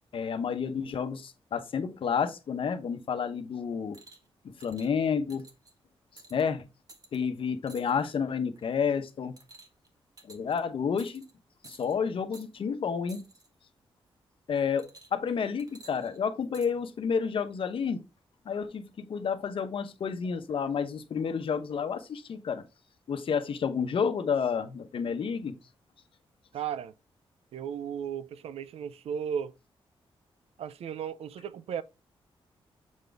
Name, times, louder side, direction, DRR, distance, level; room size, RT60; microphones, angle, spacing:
voice 1, 0.1-4.0 4.6-5.4 6.3-6.6 7.1-9.4 10.2-11.2 11.6-13.3 14.5-18.0 18.5-22.6 23.1-25.5, left 6 dB, 65° left, 1.0 m, -30 dB
sound 1, 3.9-4.3 4.6-4.9 5.3-5.7 6.2-6.4 6.9-7.2 7.7-8.1 8.6-8.8 9.4-9.9 10.2-10.6 11.0-11.3 11.6-12.0 12.3-12.5 13.1-13.5 14.8-15.3 15.6-16.7 17.5-17.6, right 3 dB, 40° right, 1.4 m, -53 dB
voice 2, 26.5-26.9 27.5-29.5 30.6-31.8, right 8 dB, 90° right, 0.5 m, -35 dB
7.3 x 3.9 x 3.5 m
cardioid pair, 100°, 10 cm